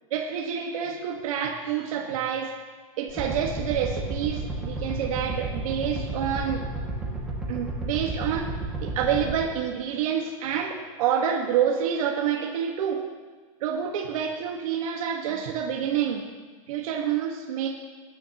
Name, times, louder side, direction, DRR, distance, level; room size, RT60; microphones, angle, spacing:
voice 1, 0.1-2.5 3.0-6.6 7.5-8.5 8.8-13.0 13.6-16.3 16.7-17.7, right 8 dB, 75° right, 0 dB, 1.6 m, -28 dB
sound 1, 3.1-9.3, right 2 dB, 5° right, 2.1 m, -32 dB
20.0 x 10.5 x 3.0 m, 1.5 s
supercardioid pair, 150°, 18 cm